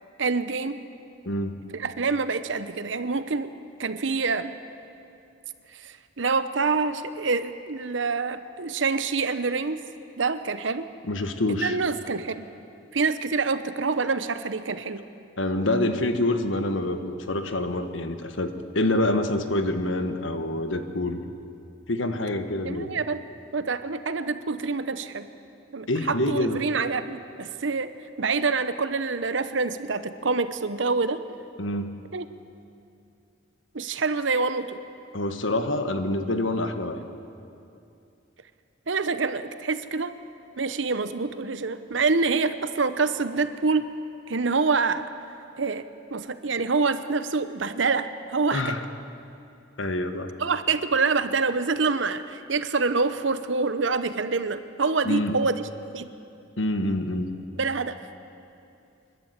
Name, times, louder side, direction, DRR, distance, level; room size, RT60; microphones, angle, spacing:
voice 1, 0.2-0.8 1.7-3.5 3.8-4.5 5.7-9.8 10.2-10.9 11.6-12.4 12.9-15.0 22.6-23.2 23.5-25.3 25.7-27.9 28.2-31.2 32.1-32.3 33.7-34.8 38.9-40.1 40.6-43.9 44.3-45.0 45.6-48.7 50.4-55.7 55.9-56.1 57.6-58.0, right 4 dB, 75° right, 12 dB, 0.9 m, -26 dB
voice 2, 1.2-1.6 11.0-11.8 15.4-21.2 21.9-22.9 25.9-26.6 31.6-31.9 35.1-37.0 48.5-48.8 49.8-50.3 55.0-55.4 56.6-57.3, left 1 dB, 80° left, 8 dB, 1.4 m, -26 dB
28.5 x 12.0 x 8.2 m, 2.6 s
head